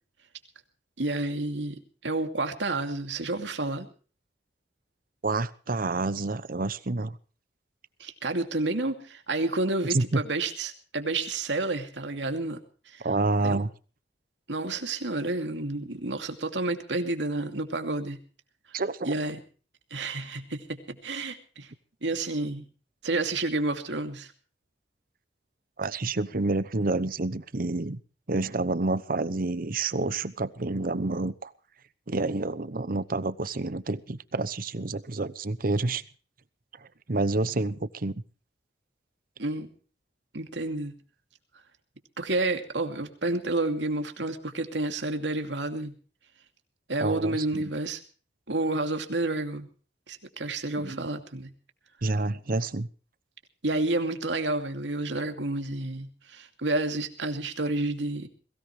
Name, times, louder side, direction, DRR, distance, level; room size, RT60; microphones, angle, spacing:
voice 1, 1.0-3.9 8.0-12.6 12.9-13.0 13.4-13.6 14.5-18.2 19.0-19.4 19.9-21.7 22.0-22.7 23.0-24.3 39.4-39.7 40.3-40.9 42.2-45.9 46.9-48.0 48.5-49.7 50.1-51.5 53.6-58.3, right 2 dB, 85° right, 2.6 m, -30 dB
voice 2, 5.2-7.2 9.9-10.2 13.0-13.7 18.7-19.1 25.8-28.0 28.3-31.5 32.1-36.0 37.1-38.1 47.0-47.6 50.8-51.1 52.0-52.9, right 2 dB, 50° right, 0.9 m, -28 dB
22.5 x 17.5 x 3.3 m
head